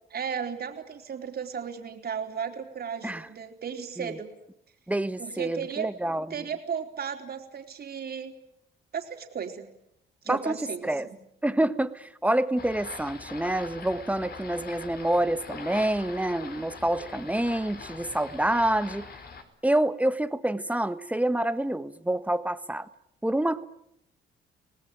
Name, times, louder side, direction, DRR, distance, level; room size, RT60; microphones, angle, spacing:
voice 1, 0.1-4.3 5.2-5.9 6.3-8.3 8.9-9.7 10.2-11.2, right 7 dB, 50° right, 4 dB, 4.2 m, -35 dB
voice 2, 4.9-6.5 10.3-10.6 10.8-11.1 11.4-19.0 19.6-22.9 23.2-23.7, right 1 dB, 5° right, 11 dB, 1.4 m, -27 dB
sound 1, 12.6-19.4, left 5 dB, 55° left, 4.7 m, -42 dB
26.5 x 19.0 x 9.2 m, 0.79 s
cardioid pair, 90°, 20 cm